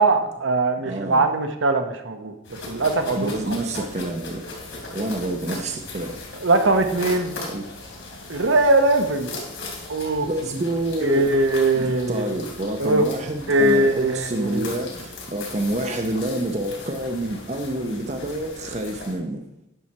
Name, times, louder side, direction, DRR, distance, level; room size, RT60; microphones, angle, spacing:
voice 1, 0.0-2.3 2.7-3.9 6.4-7.4 8.3-9.4 9.9-10.3 11.0-12.3 12.8-13.0 13.5-14.8, right 2 dB, 65° right, 6 dB, 0.9 m, -21 dB
voice 2, 0.9-1.2 3.2-4.4 4.9-6.2 7.5-7.6 10.3-11.3 11.7-19.4, right 1 dB, 30° right, 4 dB, 0.6 m, -28 dB
sound 1, 2.4-19.1, left 2 dB, 65° left, 3.5 m, -38 dB
10.5 x 6.2 x 4.2 m, 0.90 s
head